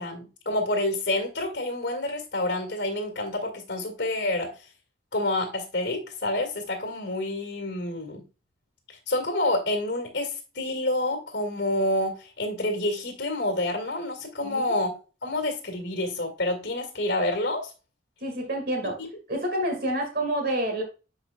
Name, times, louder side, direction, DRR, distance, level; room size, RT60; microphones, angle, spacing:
voice 1, 0.0-4.5 5.1-8.2 9.1-14.9 15.2-17.7, left 1 dB, 65° left, 5 dB, 1.9 m, -28 dB
voice 2, 18.2-19.0 19.3-20.8, right 1 dB, 55° right, 3 dB, 1.9 m, -28 dB
9.3 x 4.7 x 2.3 m, 0.31 s
head